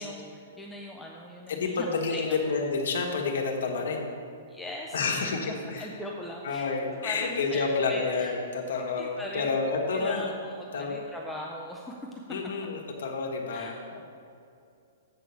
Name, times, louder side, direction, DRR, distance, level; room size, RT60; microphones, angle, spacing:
voice 1, 0.0-2.4 4.5-5.1 5.5-8.3 8.8-9.5 9.9-12.0 13.5-13.8, left 1 dB, 5° left, -2 dB, 0.4 m, -40 dB
voice 2, 1.5-4.1 4.9-5.9 6.4-10.3 10.7-11.0 12.3-14.0, left 4 dB, 65° left, 1 dB, 1.3 m, -29 dB
7.7 x 4.7 x 6.9 m, 2.5 s
hypercardioid pair, 180°, 0 cm